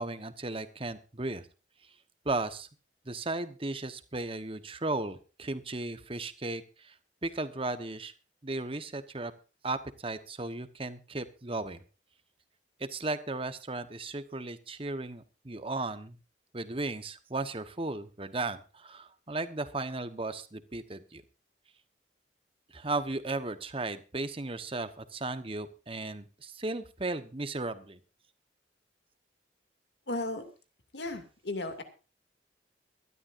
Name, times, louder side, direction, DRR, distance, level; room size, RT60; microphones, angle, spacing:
voice 1, 0.0-1.5 1.8-1.9 2.2-2.7 3.0-7.0 7.2-8.1 8.4-9.3 9.6-11.8 12.8-16.2 16.5-21.2 22.7-28.0, right 2 dB, 30° right, 11 dB, 1.1 m, -35 dB
voice 2, 30.1-30.4 30.9-31.8, left 2 dB, 65° left, 7 dB, 2.5 m, -35 dB
23.5 x 12.5 x 2.6 m, 0.33 s
head